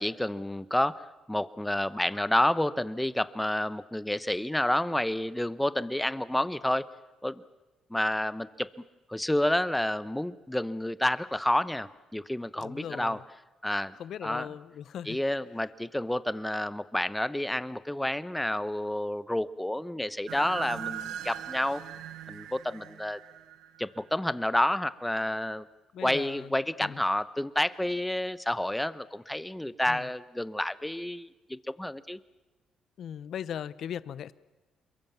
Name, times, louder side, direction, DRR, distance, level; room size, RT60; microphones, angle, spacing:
voice 1, 0.0-6.8 7.2-7.4 7.9-8.7 9.1-13.2 13.6-13.9 14.2-14.5 15.0-21.8 22.3-23.2 23.8-25.7 26.0-32.2, left 1 dB, 5° left, 15 dB, 1.0 m, -29 dB
voice 2, 12.6-13.2 14.0-15.2 25.9-26.5 26.8-27.0 29.9-30.0 33.0-34.3, left 9 dB, 70° left, 18 dB, 0.8 m, -38 dB
sound 1, 20.3-24.2, right 11 dB, 90° right, 0.8 m, -40 dB
28.0 x 22.5 x 7.2 m, 1.1 s
cardioid pair, 90°, 0 cm